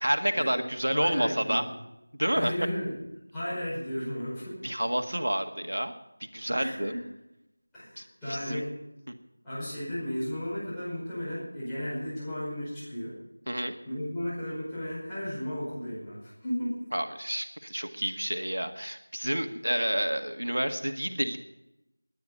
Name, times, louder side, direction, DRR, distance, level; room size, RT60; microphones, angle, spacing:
voice 1, 0.0-1.7 2.2-2.5 4.6-5.9 6.3-6.9 8.0-8.6 13.5-13.7 16.9-21.4, right 1 dB, 75° right, 6 dB, 1.7 m, -29 dB
voice 2, 0.9-1.7 2.3-3.0 3.3-4.6 6.6-7.0 7.7-8.7 9.4-13.2 13.9-16.8, equal, 5° left, -16 dB, 5.2 m, -34 dB
21.0 x 9.7 x 5.5 m, 0.91 s
figure-of-eight pair, 175°, 0 cm